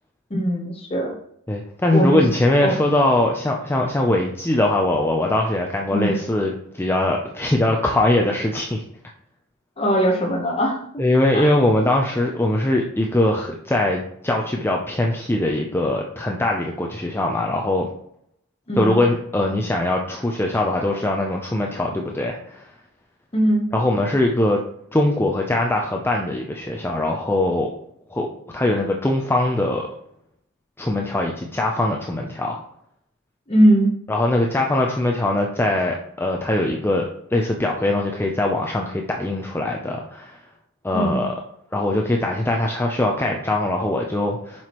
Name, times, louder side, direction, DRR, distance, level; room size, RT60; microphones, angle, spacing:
voice 1, 0.3-1.1 1.9-2.3 2.6-2.8 5.9-6.1 9.8-10.8 11.3-11.5 18.7-19.0 23.3-23.7 33.5-33.9 40.9-41.2, right 1 dB, 25° left, 0 dB, 1.0 m, -20 dB
voice 2, 1.5-8.8 11.0-17.9 18.8-22.7 23.7-24.6 24.9-27.7 28.1-28.3 28.5-29.8 30.8-32.6 34.1-40.4 40.8-41.3 41.7-44.7, left 1 dB, 10° left, 0 dB, 0.5 m, -21 dB
7.4 x 5.9 x 3.0 m, 0.70 s
head